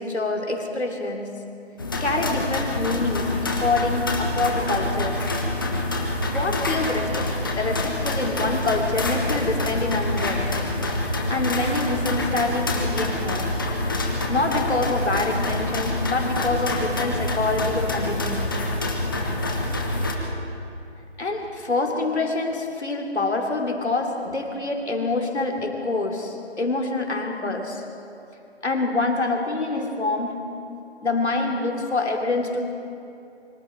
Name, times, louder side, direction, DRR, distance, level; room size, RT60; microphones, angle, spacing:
voice 1, 0.0-1.4 2.0-5.3 6.3-10.5 11.3-13.6 14.3-18.5 21.2-27.9 28.6-30.6 31.0-32.6, left 3 dB, 80° left, 2 dB, 3.2 m, -26 dB
sound 1, 1.8-20.1, left 1 dB, 20° left, 1.3 m, -26 dB
26.0 x 24.5 x 4.6 m, 2.7 s
figure-of-eight pair, 170°, 33 cm